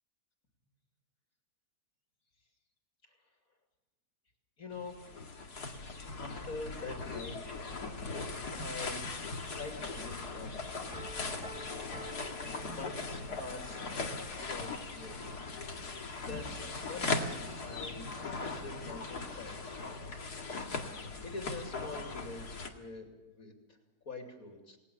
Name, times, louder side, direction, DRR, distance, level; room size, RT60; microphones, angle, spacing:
voice 1, 4.6-5.3 6.2-7.4 8.6-9.0 9.5-10.7 12.7-15.2 15.9-19.6 21.2-23.8 24.0-24.8, left 3 dB, 65° left, 2 dB, 3.3 m, -45 dB
sound 1, 4.7-22.7, left 3 dB, 90° left, 2.6 m, -39 dB
Piano, 10.9-13.5, right 2 dB, 5° right, 1.9 m, -50 dB
29.0 x 19.5 x 7.1 m, 1.1 s
omnidirectional pair, 1.6 m